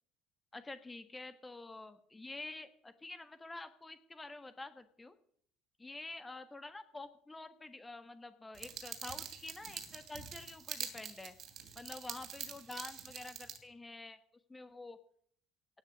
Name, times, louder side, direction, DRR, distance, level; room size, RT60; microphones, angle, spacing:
voice 1, 0.5-5.2 5.8-11.3 11.7-14.2 14.5-15.0, left 2 dB, 15° left, 10 dB, 1.5 m, -48 dB
sound 1, 8.5-13.6, right 8 dB, 45° right, 2.8 m, -45 dB
17.5 x 6.8 x 9.3 m, 0.62 s
figure-of-eight pair, 60°, 0 cm